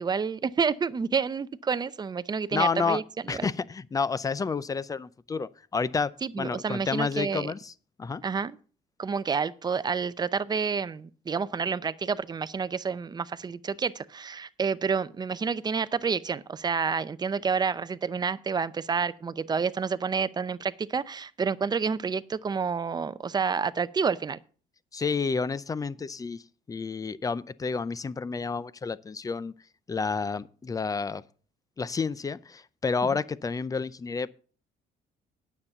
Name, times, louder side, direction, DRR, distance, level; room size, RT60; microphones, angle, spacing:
voice 1, 0.0-3.0 3.3-3.5 6.2-7.5 8.2-8.6 9.0-24.4, right 5 dB, 25° right, 0.6 m, -29 dB
voice 2, 2.5-3.0 3.3-7.7 8.0-8.2 24.9-26.4 26.7-29.5 29.9-31.2 31.8-34.3, left 5 dB, 20° left, 0.5 m, -30 dB
9.6 x 7.3 x 6.6 m
cardioid pair, 110°, 17 cm